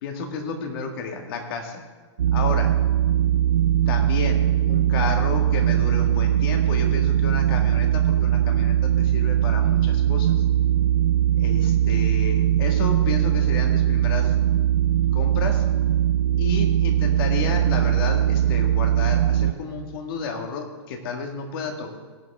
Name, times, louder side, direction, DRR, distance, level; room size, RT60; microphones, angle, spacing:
voice 1, 0.0-1.8 2.3-2.7 3.9-10.4 11.4-14.7 15.1-15.6 16.4-21.9, left 4 dB, 50° left, 4 dB, 1.8 m, -31 dB
sound 1, 2.2-19.5, right 11 dB, 85° right, 0.7 m, -20 dB
18.0 x 7.4 x 3.5 m, 1.3 s
hypercardioid pair, 150°, 15 cm